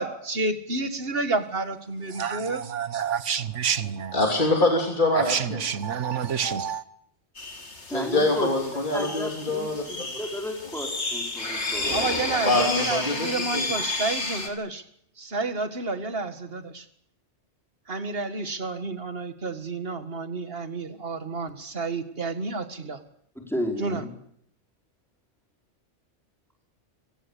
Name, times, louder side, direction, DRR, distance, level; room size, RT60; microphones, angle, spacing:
voice 1, 0.0-2.6 11.9-14.8 15.2-16.9 17.9-23.0 23.8-24.0, right 3 dB, 55° right, 2.1 m, -30 dB
voice 2, 2.1-4.2 5.1-6.8, right 8 dB, 80° right, 1.5 m, -28 dB
voice 3, 4.1-5.6 7.9-10.1 12.5-13.7, left 2 dB, 40° left, 3.4 m, -24 dB
sound 1, 7.4-14.5, left 2 dB, 70° left, 3.4 m, -31 dB
voice 4, 7.9-8.5 8.9-12.0 23.3-24.1, equal, ahead, 5.0 m, -33 dB
26.0 x 17.5 x 8.4 m
omnidirectional pair, 1.2 m